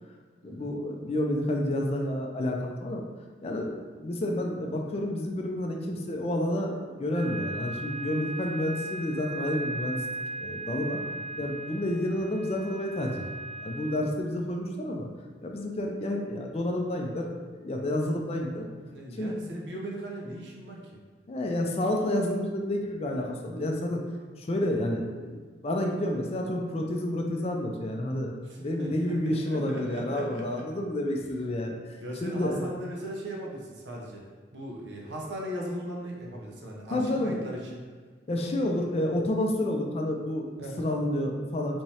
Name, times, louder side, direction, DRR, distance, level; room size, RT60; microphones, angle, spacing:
voice 1, 0.4-3.1 3.4-3.7 4.0-10.0 10.4-11.0 11.4-13.3 13.6-15.1 15.4-18.6 19.2-19.6 21.3-24.0 24.4-28.4 28.6-31.9 32.2-32.7 36.9-37.4 38.3-41.8, left 1 dB, 35° left, 1 dB, 0.4 m, -30 dB
sound 1, 7.1-14.0, right 2 dB, 5° right, 0.7 m, -37 dB
voice 2, 18.9-21.0 28.5-30.6 32.0-34.3 34.5-37.8 40.6-40.9, equal, 80° right, -2 dB, 0.7 m, -38 dB
3.5 x 2.8 x 3.1 m, 1.5 s
head